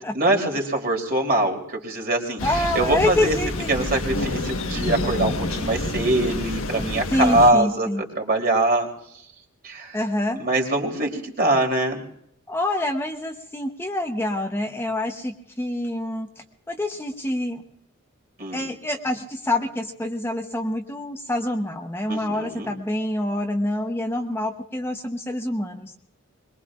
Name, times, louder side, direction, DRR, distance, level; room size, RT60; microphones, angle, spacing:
voice 1, 0.1-2.4 2.7-3.3 3.7-8.9 9.6-10.0 10.3-12.0 18.4-18.7 22.1-22.7, right 2 dB, 50° right, 2 dB, 3.2 m, -23 dB
Thunder, 2.4-7.5, left 2 dB, 85° left, 1.3 m, -28 dB
voice 2, 2.4-3.9 7.1-8.0 9.9-10.4 12.5-17.6 18.5-25.9, left 1 dB, 10° left, 3 dB, 0.9 m, -26 dB
22.5 x 22.0 x 2.4 m, 0.72 s
head